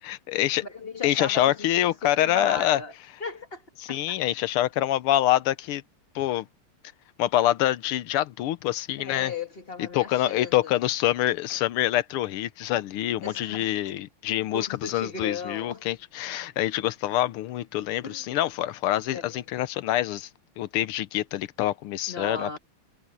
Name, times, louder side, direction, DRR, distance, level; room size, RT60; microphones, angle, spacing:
voice 1, 0.1-0.6 1.0-2.8 3.8-5.8 6.1-6.5 7.2-9.3 9.9-20.3 20.6-22.6, left 13 dB, 80° left, 1.7 m, -26 dB
voice 2, 0.6-2.9 3.2-4.2 9.0-10.8 13.2-13.7 14.5-15.9 18.0-18.4 19.1-19.4 22.1-22.6, left 4 dB, 30° left, 1.8 m, -37 dB
omnidirectional pair, 2.4 m